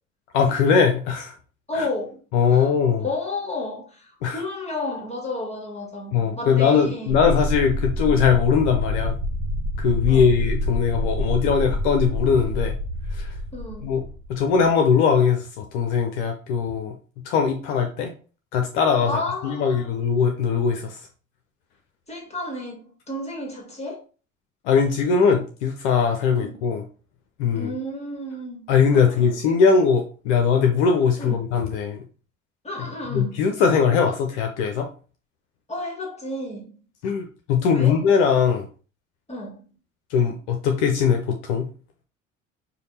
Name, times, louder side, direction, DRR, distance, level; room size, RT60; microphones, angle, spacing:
voice 1, 0.3-1.3 1.7-1.9 2.3-3.1 4.2-4.4 6.1-9.1 9.8-12.7 13.1-13.3 13.8-14.0 14.3-16.9 17.2-18.1 18.5-21.0 24.6-26.9 27.4-27.7 28.7-32.0 33.1-34.9 37.0-38.7 40.1-41.7, left 6 dB, 60° left, 0.7 m, -20 dB
voice 2, 1.7-2.2 2.5-2.7 3.0-7.2 10.1-10.3 13.5-13.9 19.1-19.8 22.1-24.0 26.4-26.6 27.5-29.6 31.2-31.5 32.6-33.4 35.7-36.7 37.7-38.0 39.3-39.7, left 2 dB, 15° left, 1.6 m, -32 dB
sound 1, 7.1-14.7, equal, 45° right, 1.2 m, -27 dB
5.0 x 2.3 x 4.1 m
figure-of-eight pair, 55°, 39 cm